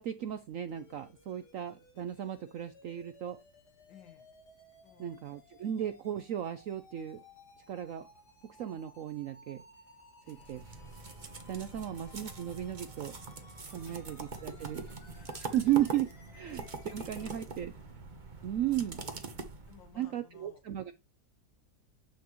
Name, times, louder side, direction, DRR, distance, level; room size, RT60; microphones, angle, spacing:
voice 1, 0.0-3.4 5.0-7.2 7.7-8.1 8.4-9.6 10.3-10.6 11.5-13.2 13.7-14.9 15.3-17.7 18.4-19.1 20.0-20.9, right 11 dB, 75° right, 0.7 m, -35 dB
sound 1, 0.7-17.3, left 2 dB, 60° left, 2.5 m, -59 dB
voice 2, 3.9-4.3 4.8-5.4 10.2-10.6 11.6-12.0 13.8-14.1 15.1-15.6 16.7-18.0 19.4-20.6, left 8 dB, 85° left, 2.1 m, -60 dB
sound 2, 10.3-20.0, right 3 dB, 30° right, 1.0 m, -44 dB
8.5 x 5.8 x 3.0 m
omnidirectional pair, 2.0 m